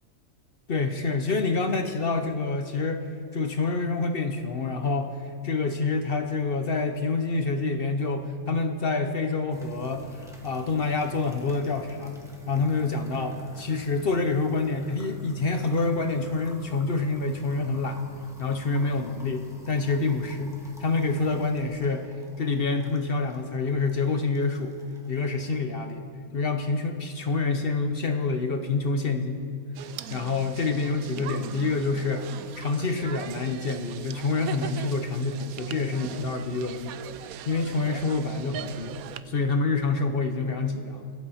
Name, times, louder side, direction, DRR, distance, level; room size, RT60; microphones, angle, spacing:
voice 1, 0.7-3.1 3.3-5.2 5.4-12.2 12.5-18.0 18.4-20.5 20.8-24.7 25.1-26.0 26.3-29.4 30.1-32.3 32.6-37.1 37.5-39.0 39.3-41.1, left 3 dB, 50° left, 7 dB, 0.8 m, -27 dB
sound 1, 9.5-25.6, left 2 dB, ahead, 1.6 m, -50 dB
sound 2, 29.7-39.2, right 10 dB, 80° right, 1.0 m, -40 dB
23.0 x 8.3 x 4.2 m, 2.5 s
omnidirectional pair, 1.5 m